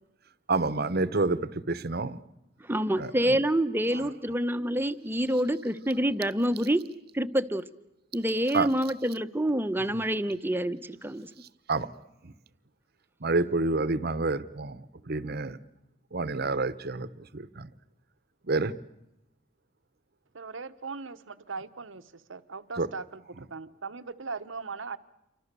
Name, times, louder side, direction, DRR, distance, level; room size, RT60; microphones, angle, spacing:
voice 1, 0.5-2.2 3.0-3.4 8.5-8.7 9.8-9.9 11.7-11.9 13.2-15.6 16.1-17.1 17.3-17.7 18.4-18.7 22.8-22.9, right 3 dB, 55° right, 15 dB, 1.0 m, -28 dB
voice 2, 2.7-6.8 7.1-7.7 8.1-11.3, right 1 dB, 10° right, 11 dB, 0.9 m, -27 dB
voice 3, 20.3-25.0, right 4 dB, 85° right, 10 dB, 1.1 m, -39 dB
28.5 x 25.0 x 6.8 m, 0.89 s
head